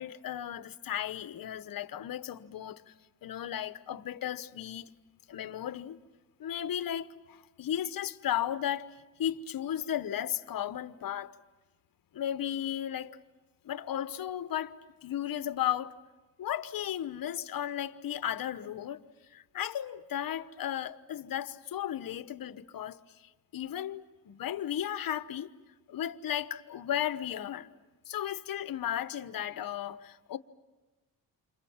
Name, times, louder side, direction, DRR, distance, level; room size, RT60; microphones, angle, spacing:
voice 1, 0.0-2.9 3.2-4.9 5.3-6.0 6.4-8.9 9.2-11.3 12.1-13.2 13.6-16.0 16.4-19.0 19.3-25.5 25.9-27.7 28.1-30.4, left 10 dB, 60° left, 1.1 m, -35 dB
29.5 x 26.5 x 7.3 m
cardioid pair, 105°, 38 cm